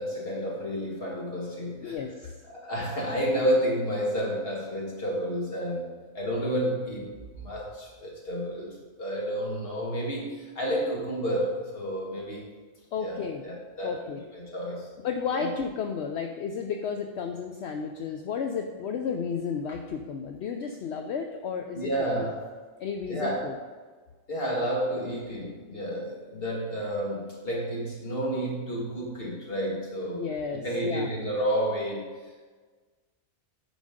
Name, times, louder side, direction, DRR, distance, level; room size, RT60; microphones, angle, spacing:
voice 1, 0.0-2.0 2.5-12.5 13.0-14.9 15.3-15.5 21.7-22.5 23.1-23.6 24.3-30.2 30.6-32.1, equal, 45° left, -3 dB, 2.2 m, -30 dB
voice 2, 1.8-2.4 12.9-13.4 13.8-14.2 15.0-21.9 22.2-22.3 22.8-23.5 30.1-31.1, left 6 dB, 65° left, 4 dB, 0.8 m, -32 dB
9.2 x 5.2 x 5.0 m, 1.4 s
omnidirectional pair, 1.4 m